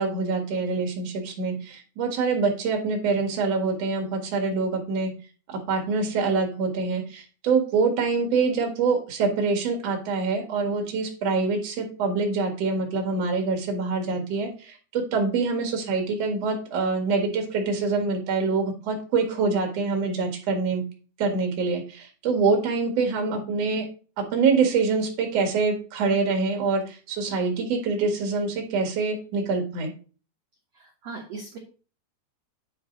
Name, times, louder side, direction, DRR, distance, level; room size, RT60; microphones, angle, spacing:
voice 1, 0.0-5.1 5.5-20.8 21.2-23.9 24.2-29.9, right 4 dB, 50° right, 3 dB, 2.1 m, -25 dB
voice 2, 30.7-31.6, right 4 dB, 75° right, -2 dB, 1.5 m, -39 dB
10.0 x 4.6 x 3.8 m, 0.37 s
omnidirectional pair, 4.9 m